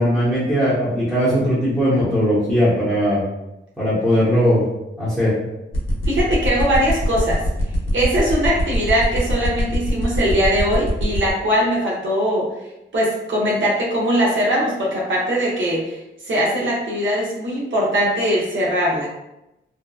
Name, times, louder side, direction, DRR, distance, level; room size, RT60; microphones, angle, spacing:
voice 1, 0.0-3.2 3.8-4.6 5.0-5.3, equal, 5° right, -11 dB, 0.7 m, -18 dB
sound 1, 5.7-11.3, left 1 dB, 70° left, 0.7 m, -22 dB
voice 2, 6.1-7.4 7.9-12.5 12.9-19.1, equal, 70° right, -5 dB, 0.6 m, -21 dB
2.6 x 2.2 x 2.2 m, 0.93 s
wide cardioid pair, 120°, 20 cm